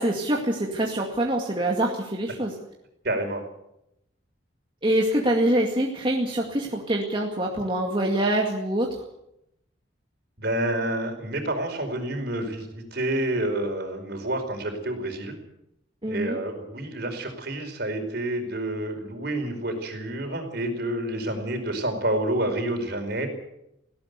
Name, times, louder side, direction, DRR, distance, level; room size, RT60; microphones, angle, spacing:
voice 1, 0.0-2.6 4.8-8.9 16.0-16.4, right 1 dB, 25° right, -1 dB, 2.2 m, -25 dB
voice 2, 3.0-3.4 10.4-15.4 16.0-23.3, right 1 dB, 55° right, 5 dB, 4.9 m, -28 dB
19.5 x 17.5 x 8.2 m, 0.82 s
head